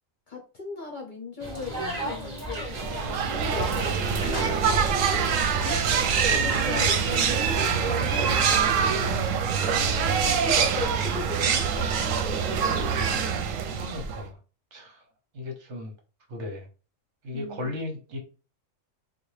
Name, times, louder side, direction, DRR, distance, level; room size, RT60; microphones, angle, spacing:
voice 1, 0.3-2.7 3.1-5.8 6.3-7.1 7.3-12.6 17.3-17.7, left 4 dB, 50° left, 0.7 m, -38 dB
sound 1, 1.4-8.2, equal, 35° right, 1.1 m, -35 dB
sound 2, 2.7-14.3, right 6 dB, 85° right, 1.0 m, -25 dB
voice 2, 13.7-14.4 14.7-15.0 15.3-15.9 16.3-16.7 17.2-18.2, left 2 dB, 65° right, 1.2 m, -36 dB
4.0 x 2.2 x 3.2 m
omnidirectional pair, 1.3 m